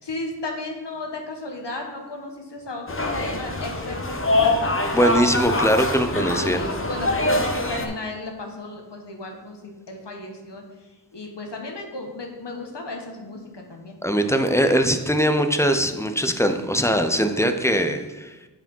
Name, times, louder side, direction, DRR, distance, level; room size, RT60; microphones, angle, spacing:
voice 1, 0.0-4.8 6.3-10.6 11.1-14.0, left 2 dB, 85° left, 2 dB, 1.4 m, -34 dB
sound 1, 2.9-7.9, left 2 dB, 30° left, 0.9 m, -24 dB
voice 2, 4.9-6.6 14.0-18.3, equal, 5° left, 7 dB, 0.6 m, -21 dB
8.2 x 4.9 x 5.4 m, 1.1 s
wide cardioid pair, 75°, 41 cm